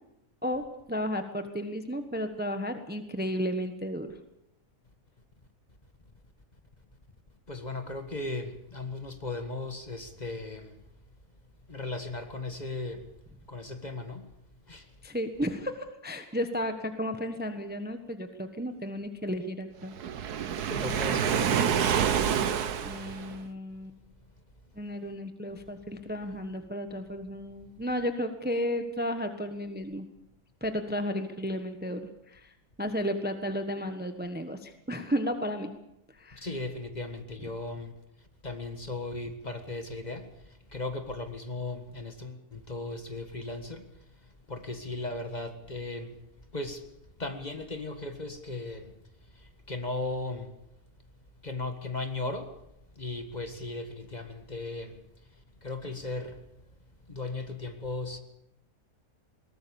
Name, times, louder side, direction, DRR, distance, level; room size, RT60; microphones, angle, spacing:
voice 1, 0.4-4.1 15.0-20.0 22.8-23.9 24.7-30.1 30.6-35.7 36.1-36.5 37.4-37.5, equal, 5° right, 8 dB, 1.2 m, -33 dB
voice 2, 7.5-10.8 11.7-13.1 13.5-14.3 14.7-14.9 20.7-21.8 36.3-38.0 38.4-43.9 44.5-46.2 46.5-46.8 47.2-48.9 49.3-50.5 51.4-52.5 53.0-55.0 55.6-56.4 57.1-58.2, left 2 dB, 30° left, 7 dB, 1.8 m, -37 dB
Waves surf, 20.0-23.5, right 8 dB, 80° right, 1.6 m, -27 dB
21.5 x 19.0 x 7.1 m, 0.82 s
omnidirectional pair, 1.6 m